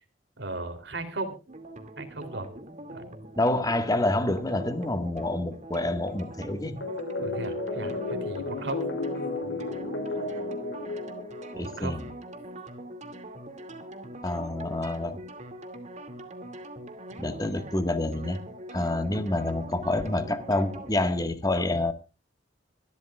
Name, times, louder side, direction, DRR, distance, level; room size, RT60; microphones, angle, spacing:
voice 1, 0.4-1.3 2.0-2.5 2.9-3.1 7.1-8.9 11.6-12.0, right 2 dB, 65° right, 3.3 m, -36 dB
sound 1, 1.5-20.9, right 1 dB, 40° right, 2.4 m, -43 dB
voice 2, 3.4-6.8 11.5-12.1 14.2-15.2 17.2-18.4 18.7-21.9, left 2 dB, 20° left, 1.7 m, -27 dB
sound 2, 6.8-12.0, left 2 dB, 75° left, 5.6 m, -33 dB
25.0 x 12.5 x 2.4 m
head